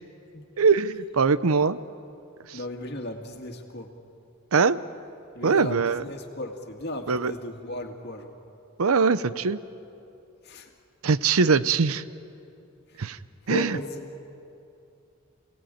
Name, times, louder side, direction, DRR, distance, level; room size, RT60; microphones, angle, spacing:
voice 1, 0.6-1.8 2.5-2.6 4.5-4.8 5.4-6.0 7.1-7.3 8.8-9.6 11.0-12.0 13.0-13.2 13.5-13.8, right 5 dB, 80° right, 15 dB, 0.7 m, -22 dB
voice 2, 2.5-3.9 5.3-8.3 10.4-10.7 12.9-13.0 13.4-14.1, left 1 dB, 50° left, 4 dB, 2.2 m, -35 dB
27.5 x 18.0 x 9.1 m, 2.7 s
head